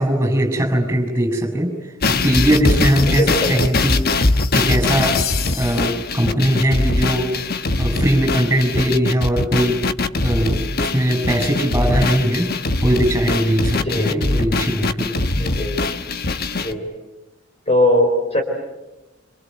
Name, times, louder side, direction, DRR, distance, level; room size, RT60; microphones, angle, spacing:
voice 1, 0.0-1.7 2.1-4.1 4.5-5.2 5.5-7.4 7.7-9.9 10.2-12.5 12.8-15.5, right 1 dB, 10° right, 4 dB, 6.9 m, -20 dB
sound 1, 2.0-16.7, left 3 dB, 50° left, 1.2 m, -21 dB
voice 2, 3.1-3.6 13.7-14.2 15.4-15.8 16.5-16.9 17.7-18.4, left 1 dB, 30° left, 3 dB, 4.3 m, -20 dB
27.5 x 27.0 x 7.9 m, 1.0 s
head